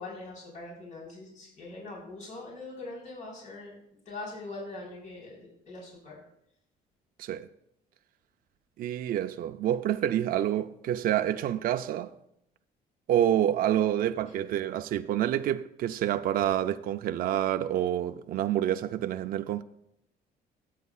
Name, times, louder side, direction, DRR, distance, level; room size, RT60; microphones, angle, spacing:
voice 1, 0.0-3.8 4.1-6.2, left 2 dB, 45° left, 4.2 m, -42 dB
voice 2, 8.8-12.1 13.1-19.6, right 11 dB, 60° right, 0.5 m, -28 dB
18.0 x 8.3 x 2.4 m
cardioid pair, 110°, 17 cm